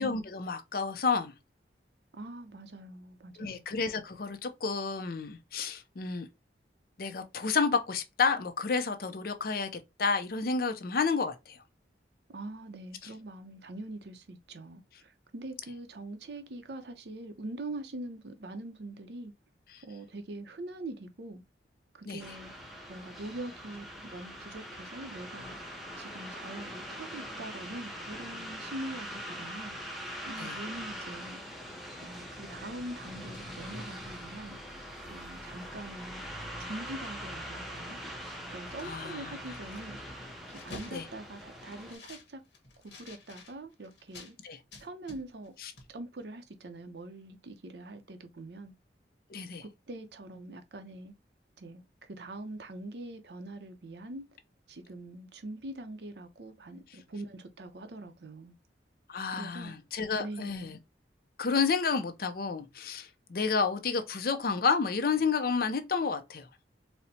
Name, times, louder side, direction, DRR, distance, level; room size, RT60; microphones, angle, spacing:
voice 1, 0.0-1.3 3.4-6.3 7.0-11.6 19.7-19.8 22.1-22.2 30.4-30.6 38.8-39.4 40.9-41.1 44.4-44.6 45.6-45.7 49.3-49.6 59.1-60.8 61.4-66.5, left 5 dB, 55° left, 0.5 m, -30 dB
voice 2, 2.1-3.6 12.3-19.3 19.8-21.4 21.9-22.5 22.9-25.6 26.0-29.8 30.3-31.4 32.0-34.6 35.1-36.3 36.6-38.0 38.5-40.0 40.5-42.4 42.8-44.4 44.8-45.5 45.9-48.7 49.6-51.1 51.6-54.3 54.7-58.6 59.3-59.7 60.2-60.7, right 2 dB, 65° right, 0.6 m, -43 dB
sound 1, 22.2-42.0, equal, ahead, 0.6 m, -42 dB
sound 2, 33.3-35.1 35.5-35.7 36.0-37.2 37.5-44.3 44.7-45.5 45.8-45.9, left 2 dB, 80° left, 1.0 m, -52 dB
4.2 x 2.1 x 2.7 m
head